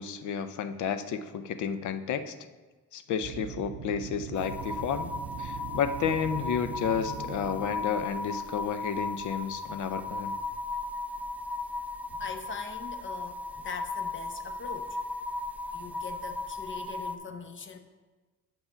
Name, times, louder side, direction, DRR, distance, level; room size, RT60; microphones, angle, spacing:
voice 1, 0.0-2.3 2.9-5.1 5.4-10.4, left 7 dB, 75° left, 11 dB, 0.7 m, -31 dB
sound 1, 3.2-8.3, right 10 dB, 70° right, 0.5 m, -41 dB
sound 2, 4.3-17.2, left 3 dB, 5° right, 0.3 m, -36 dB
voice 2, 12.1-15.0 15.7-17.8, left 5 dB, 40° left, 8 dB, 0.9 m, -42 dB
7.2 x 5.7 x 5.6 m, 1.3 s
cardioid pair, 90°, 30 cm